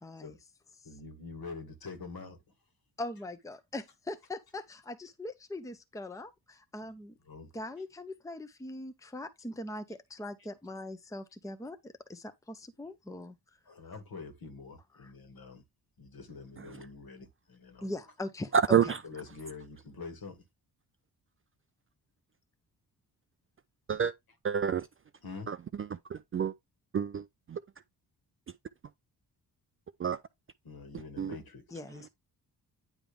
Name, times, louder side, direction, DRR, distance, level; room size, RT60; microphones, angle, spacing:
voice 1, 0.0-0.4 0.8-0.9 3.0-7.2 7.5-13.6 14.9-15.1 17.8-19.0 31.7-32.1, left 1 dB, 10° left, 0.8 m, -41 dB
voice 2, 0.8-2.4 7.3-7.5 13.7-15.6 16.0-17.9 18.7-20.4 25.2-25.5 30.6-31.8, left 4 dB, 55° left, 1.9 m, -45 dB
voice 3, 24.4-24.9 25.5-25.6 26.1-26.5 26.9-27.2 27.5-27.6 30.0-30.2 31.2-31.3, right 8 dB, 30° right, 0.4 m, -28 dB
9.0 x 3.5 x 3.4 m
supercardioid pair, 50°, 43 cm